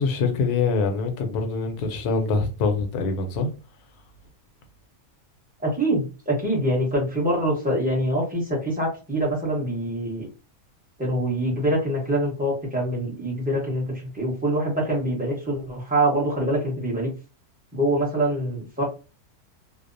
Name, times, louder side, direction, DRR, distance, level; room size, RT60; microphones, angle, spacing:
voice 1, 0.0-3.5, left 4 dB, 80° left, 1.1 m, -24 dB
voice 2, 5.6-10.3 11.0-17.1 17.7-18.9, right 1 dB, 10° right, 0.6 m, -25 dB
2.7 x 2.0 x 2.5 m
omnidirectional pair, 1.6 m